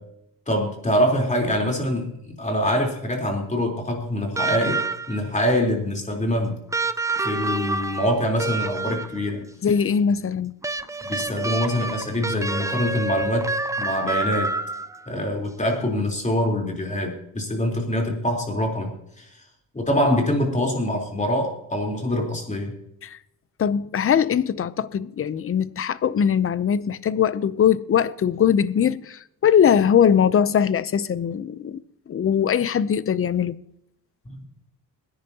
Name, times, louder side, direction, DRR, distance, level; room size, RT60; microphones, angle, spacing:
voice 1, 0.5-6.6 7.2-9.5 11.0-14.5 15.1-19.3 19.7-22.7 34.3-34.4, equal, 20° left, 3.8 m, -24 dB
sound 1, 4.4-5.3 6.7-9.3 10.6-15.1 16.4-16.5, right 3 dB, 10° right, 0.4 m, -28 dB
voice 2, 9.6-10.5 23.0-23.2 23.6-33.6, left 8 dB, 35° left, 0.6 m, -21 dB
22.5 x 10.0 x 2.9 m
cardioid pair, 105°, 38 cm